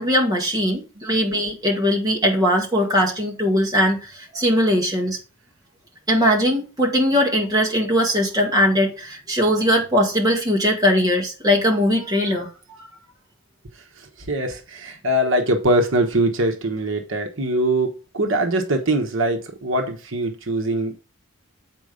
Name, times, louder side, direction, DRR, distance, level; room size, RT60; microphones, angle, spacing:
voice 1, 0.0-5.2 6.1-12.5, equal, 15° right, 1.9 m, -20 dB
voice 2, 14.3-21.0, right 1 dB, 65° right, 1.2 m, -22 dB
8.1 x 4.7 x 5.1 m
head